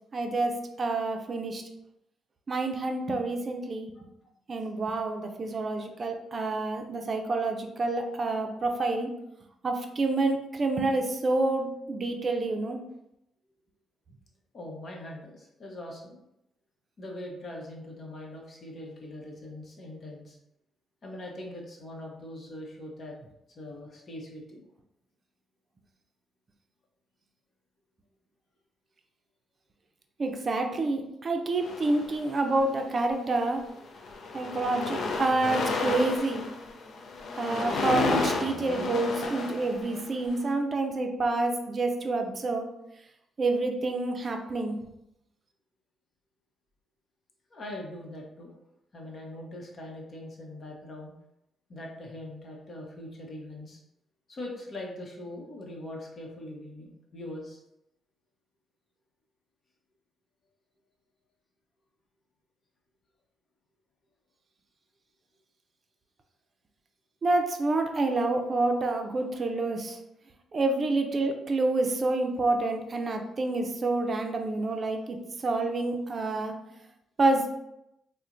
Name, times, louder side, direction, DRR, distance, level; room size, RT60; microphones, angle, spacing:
voice 1, 0.1-1.6 2.5-3.9 4.5-9.1 9.6-12.8 30.2-33.6 34.3-36.4 37.4-42.7 43.4-44.8 67.2-70.0 70.5-75.2 75.4-76.5 77.2-77.5, right 2 dB, 45° right, 4 dB, 0.4 m, -28 dB
voice 2, 14.5-16.2 17.0-20.4 21.0-23.2 23.5-24.6 47.5-48.5 48.9-51.1 51.7-53.8 54.3-57.6, left 1 dB, 50° left, 0 dB, 0.9 m, -42 dB
sound 1, 31.6-32.6 33.4-33.6 33.8-40.3, left 4 dB, 75° left, 0.4 m, -32 dB
4.1 x 2.1 x 2.5 m, 0.84 s
supercardioid pair, 70°, 0 cm